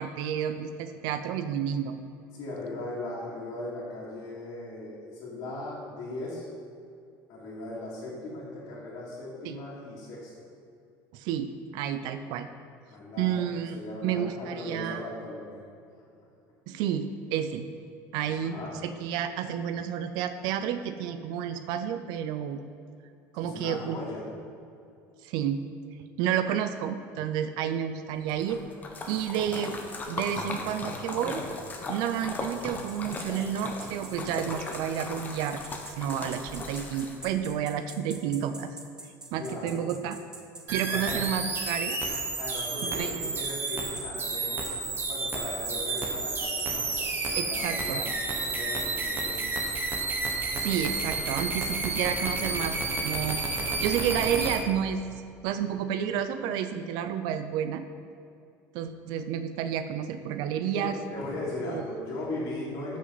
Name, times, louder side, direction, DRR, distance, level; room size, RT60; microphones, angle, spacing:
voice 1, 0.0-1.9 9.4-9.6 11.1-12.5 13.2-15.0 16.7-17.7 18.1-22.6 23.3-24.0 25.2-25.6 26.2-28.6 29.1-29.8 30.1-31.4 31.9-35.6 36.0-38.7 39.3-40.2 40.7-42.1 42.8-43.3 47.3-48.0 50.5-52.8 53.0-53.4 53.8-55.0 55.4-57.9 58.7-61.0 61.6-61.8, right 9 dB, 70° right, 10 dB, 0.5 m, -30 dB
voice 2, 2.3-6.5 7.3-10.3 12.9-15.6 18.2-18.7 23.4-24.3 39.4-39.8 40.9-41.5 42.4-49.4 60.8-63.0, left 2 dB, 55° left, -9 dB, 2.5 m, -38 dB
Splash splatter, 28.3-37.4, left 3 dB, 20° left, 1.0 m, -37 dB
sound 1, 32.9-40.9 41.2-41.3 41.7-51.7, right 2 dB, 10° right, 0.9 m, -46 dB
sound 2, 40.7-54.6, right 3 dB, 30° right, 1.3 m, -31 dB
13.0 x 6.2 x 4.0 m, 2.6 s
cardioid pair, 145°, 8 cm